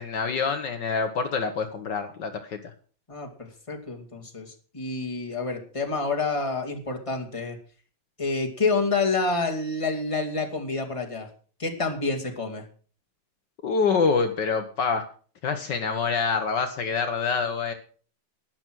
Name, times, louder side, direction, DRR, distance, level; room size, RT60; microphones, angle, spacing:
voice 1, 0.0-2.6 13.6-15.0 15.4-17.7, left 5 dB, 65° left, 7 dB, 1.8 m, -26 dB
voice 2, 3.1-7.6 8.2-11.3 11.6-12.6, left 3 dB, 15° left, 1 dB, 2.3 m, -28 dB
12.0 x 10.5 x 6.2 m, 0.42 s
omnidirectional pair, 2.1 m